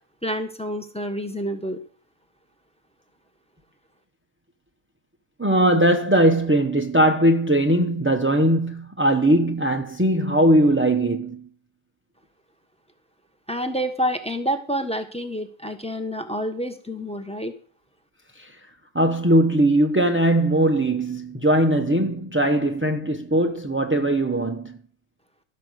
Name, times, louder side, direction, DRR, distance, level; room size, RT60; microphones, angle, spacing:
voice 1, 0.2-1.8 13.5-17.5, equal, 5° left, 1.0 m, -28 dB
voice 2, 5.4-11.5 18.4-18.6 18.9-24.8, right 1 dB, 10° right, 0.5 m, -20 dB
16.0 x 6.8 x 6.5 m
omnidirectional pair, 1.9 m